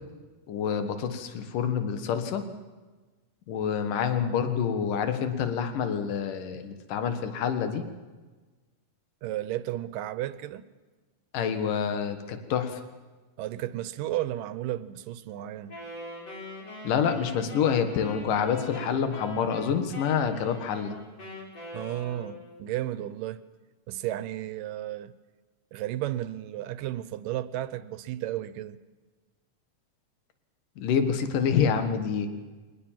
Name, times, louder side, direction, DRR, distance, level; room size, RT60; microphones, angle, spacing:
voice 1, 0.5-2.4 3.5-7.9 11.3-12.8 16.8-21.0 30.8-32.3, left 7 dB, 75° left, 3.2 m, -27 dB
voice 2, 9.2-10.7 13.4-15.8 21.7-23.4 23.9-25.1 25.7-28.8, right 13 dB, 80° right, 2.4 m, -33 dB
Wind instrument woodwind instrument, 15.7-22.6, left 1 dB, 45° left, 6.6 m, -42 dB
23.5 x 19.5 x 7.4 m
omnidirectional pair, 3.9 m